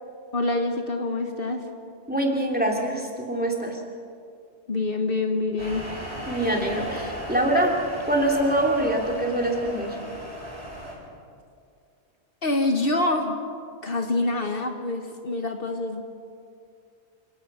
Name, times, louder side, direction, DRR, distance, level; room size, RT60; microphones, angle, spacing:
voice 1, 0.3-1.6 4.7-5.8 12.4-13.4 13.8-16.0, left 2 dB, 55° left, 4 dB, 1.5 m, -26 dB
voice 2, 2.1-3.8 6.3-7.7 8.1-10.0, right 1 dB, 10° right, 0 dB, 3.0 m, -24 dB
sound 1, 5.6-10.9, equal, 25° right, 7.3 m, -36 dB
28.0 x 17.5 x 6.3 m, 2.3 s
omnidirectional pair, 1.1 m